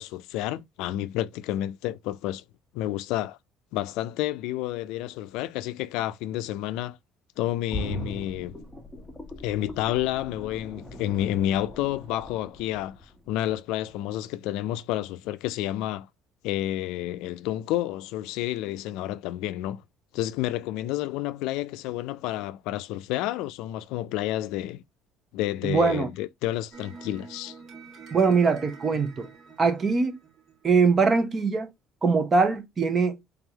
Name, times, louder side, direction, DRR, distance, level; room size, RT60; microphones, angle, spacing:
voice 1, 0.0-2.4 2.7-3.4 3.7-7.0 7.4-8.6 9.4-13.0 13.3-16.1 16.4-19.8 20.1-24.8 25.3-27.6, left 14 dB, 85° left, 0.4 m, -30 dB
sound 1, 7.7-13.5 13.9-14.0, left 1 dB, ahead, 1.2 m, -39 dB
voice 2, 25.6-26.1 28.1-29.3 29.6-30.2 30.6-31.7 32.0-33.2, right 4 dB, 30° right, 0.9 m, -22 dB
sound 2, 26.7-31.0, right 5 dB, 50° right, 2.3 m, -47 dB
3.7 x 3.5 x 2.9 m
cardioid pair, 125°, 0 cm